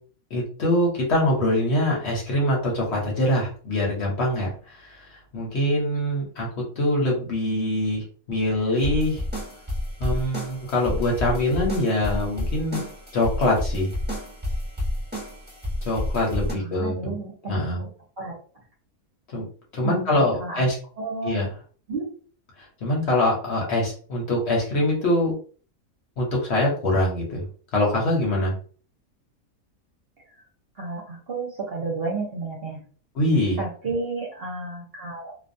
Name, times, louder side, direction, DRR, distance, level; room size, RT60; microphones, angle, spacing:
voice 1, 0.3-6.5 6.8-9.2 10.0-12.8 13.1-13.9 15.8-17.1 17.5-17.8 19.3-19.4 19.7-20.7 21.2-21.5 22.6-25.3 26.2-27.5 27.7-28.5 33.2-33.6, left 1 dB, 55° left, -2 dB, 0.9 m, -24 dB
sound 1, 8.8-16.5, left 1 dB, 10° right, 0.9 m, -30 dB
voice 2, 16.5-17.9 18.2-18.4 19.8-20.7 21.0-21.4 21.9-22.1 30.4-30.5 30.8-32.8 33.6-35.3, right 3 dB, 55° right, -2 dB, 0.8 m, -32 dB
2.4 x 2.2 x 2.5 m, 0.42 s
omnidirectional pair, 1.5 m